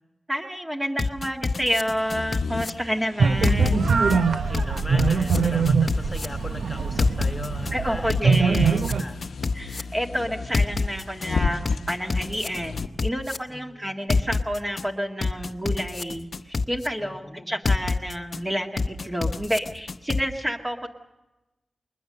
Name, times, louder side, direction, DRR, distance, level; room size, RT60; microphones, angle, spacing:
voice 1, 0.3-4.0 7.7-8.9 9.5-20.9, equal, 15° right, 3 dB, 1.8 m, -29 dB
sound 1, 1.0-2.7 3.4-4.2 4.5-6.3 7.0-7.7 8.1-9.8 10.5-11.3 11.7-13.4 14.1-14.8 15.2-16.9 17.7-18.4 18.8-20.2, left 4 dB, 50° left, 0.7 m, -26 dB
sound 2, 2.0-12.9, left 5 dB, 85° left, 0.9 m, -35 dB
sound 3, 3.2-9.0, right 5 dB, 80° right, 0.9 m, -23 dB
voice 2, 4.2-9.2 13.5-13.9 17.0-17.5, left 1 dB, 20° left, 7 dB, 1.5 m, -38 dB
21.5 x 20.0 x 6.7 m, 1.0 s
wide cardioid pair, 80°, 0 cm